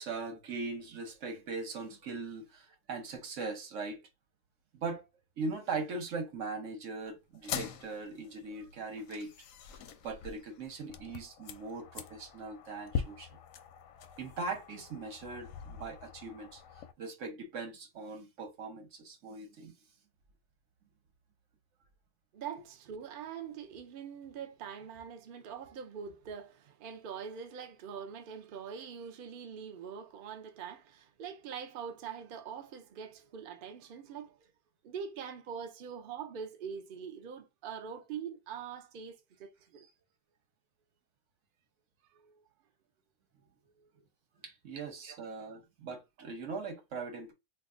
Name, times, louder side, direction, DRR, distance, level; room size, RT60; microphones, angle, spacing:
voice 1, 0.0-4.0 4.7-5.1 5.4-9.3 10.0-13.4 14.0-16.6 17.0-19.7 22.5-22.7 44.4-47.3, right 3 dB, 55° right, 1.1 m, -40 dB
sound 1, 7.3-16.9, left 7 dB, 70° left, 0.8 m, -43 dB
voice 2, 22.3-34.5 34.8-39.9 42.1-42.4 43.8-43.9 45.0-45.2 45.5-45.6 46.2-46.3, right 7 dB, 85° right, 0.4 m, -44 dB
2.8 x 2.3 x 3.6 m
omnidirectional pair, 1.7 m